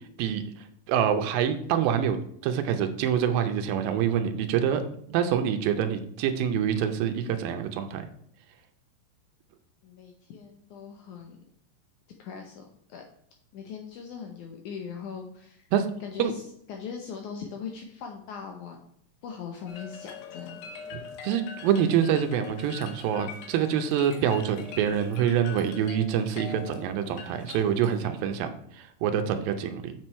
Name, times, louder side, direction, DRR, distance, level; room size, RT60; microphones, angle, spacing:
voice 1, 0.9-2.2 2.4-4.8 5.1-8.0 15.7-15.9 16.2-16.3 20.9-29.9, right 9 dB, 90° right, 7 dB, 2.5 m, -26 dB
voice 2, 9.8-11.4 12.2-12.6 12.9-13.0 13.5-15.7 16.0-16.4 16.7-18.8 19.2-21.0 23.6-23.7, left 6 dB, 70° left, 3 dB, 2.0 m, -40 dB
sound 1, 19.7-28.0, left 6 dB, 90° left, 2.8 m, -43 dB
7.4 x 6.2 x 4.3 m, 0.69 s
omnidirectional pair, 4.0 m